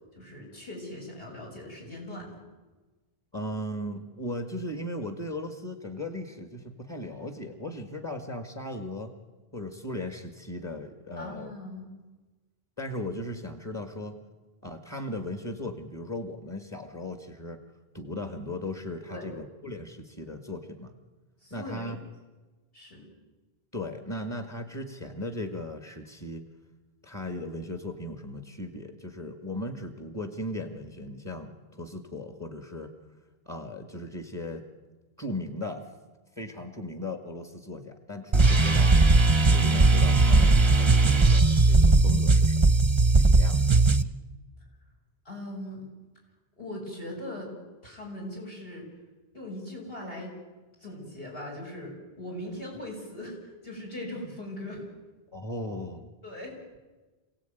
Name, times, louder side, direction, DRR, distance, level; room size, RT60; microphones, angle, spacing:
voice 1, 0.1-2.3 11.2-11.9 19.1-19.3 21.4-21.9 22.7-23.1 45.2-45.9 46.6-47.5 47.8-48.9 49.3-50.4 50.8-54.9 56.2-56.5, left 1 dB, 65° left, 0 dB, 7.7 m, -40 dB
voice 2, 3.3-9.1 9.5-11.5 12.8-14.2 14.6-17.6 17.9-20.9 21.5-22.0 23.7-26.4 27.0-32.9 33.5-34.7 35.2-35.9 36.4-39.0 39.5-42.6 43.2-43.9 55.3-56.1, left 1 dB, 25° left, 6 dB, 2.0 m, -37 dB
sound 1, 38.3-44.0, right 3 dB, 30° right, 0.9 m, -19 dB
27.0 x 17.5 x 9.4 m, 1.2 s
omnidirectional pair, 1.0 m